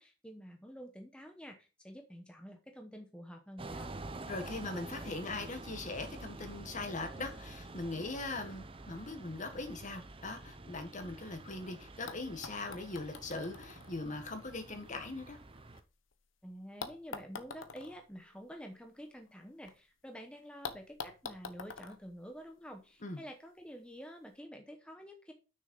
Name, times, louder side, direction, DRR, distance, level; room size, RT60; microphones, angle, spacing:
voice 1, 0.0-3.9 16.4-25.3, equal, 5° left, 1.0 m, -49 dB
sound 1, 3.6-15.8, right 2 dB, 30° right, 0.7 m, -48 dB
voice 2, 4.3-15.4 23.0-23.2, left 2 dB, 40° left, 1.5 m, -40 dB
sound 2, 11.6-11.7 12.1-16.1 16.8-19.8 20.0-20.1 20.6-23.0 24.0-24.1, left 5 dB, 85° left, 1.0 m, -48 dB
6.4 x 6.4 x 5.4 m
head